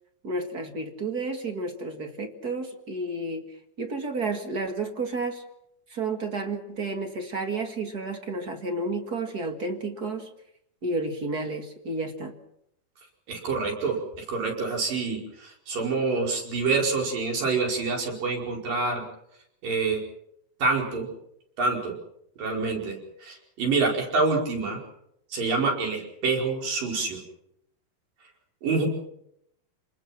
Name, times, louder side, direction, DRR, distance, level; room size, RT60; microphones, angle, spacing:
voice 1, 0.2-5.4 5.9-10.3 10.8-12.3, right 3 dB, 40° right, 6 dB, 1.5 m, -31 dB
voice 2, 13.3-19.0 19.6-20.0 20.6-21.1 21.6-22.0 22.4-24.8 25.3-27.2 28.6-28.9, right 4 dB, 60° right, 1 dB, 6.6 m, -27 dB
28.5 x 20.5 x 6.0 m, 0.74 s
omnidirectional pair, 4.5 m